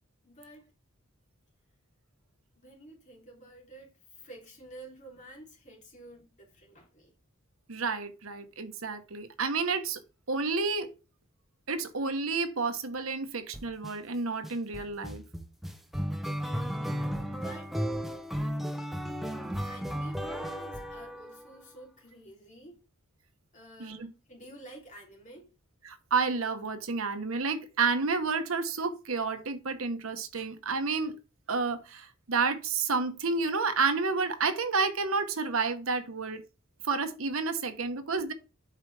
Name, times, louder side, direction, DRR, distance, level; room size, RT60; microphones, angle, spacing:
voice 1, 0.2-0.7 2.5-7.1 16.4-17.0 17.3-17.8 19.6-22.8 23.5-25.5, right 1 dB, 35° left, 3.2 m, -50 dB
voice 2, 7.7-10.0 10.3-10.9 11.7-15.2 23.8-24.1 25.8-31.1 31.5-36.4 36.8-38.3, right 4 dB, 75° right, 1.1 m, -30 dB
sound 1, 13.5-13.9 14.4-21.6, equal, ahead, 0.8 m, -34 dB
8.1 x 5.4 x 3.3 m
head